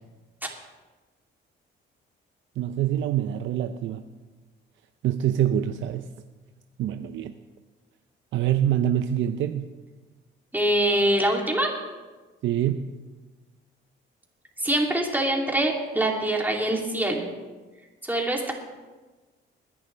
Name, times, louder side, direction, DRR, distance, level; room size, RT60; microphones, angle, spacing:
voice 1, 2.6-4.0 5.0-6.0 6.8-7.3 8.3-9.7 12.4-12.9, right 11 dB, 75° right, 8 dB, 0.6 m, -25 dB
voice 2, 10.5-11.7 14.6-17.2 18.0-18.5, right 1 dB, 10° right, -1 dB, 2.9 m, -24 dB
21.0 x 11.0 x 3.4 m, 1.3 s
cardioid pair, 90°, 20 cm